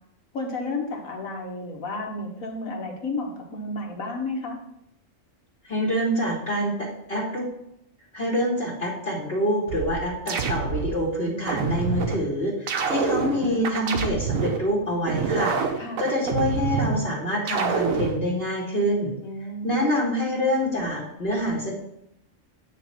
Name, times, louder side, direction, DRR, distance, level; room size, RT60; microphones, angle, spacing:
voice 1, 0.3-4.6 15.8-16.0 19.2-19.8, left 2 dB, 90° left, 1 dB, 1.8 m, -32 dB
voice 2, 5.6-7.5 8.1-15.6 16.0-19.1 19.6-21.7, equal, 45° left, -5 dB, 2.2 m, -26 dB
sound 1, 9.7-11.0 11.5-12.2 12.7-14.6 15.1-17.0 17.5-18.2, right 5 dB, 85° right, 1.2 m, -26 dB
9.3 x 3.2 x 5.8 m, 0.79 s
omnidirectional pair, 1.4 m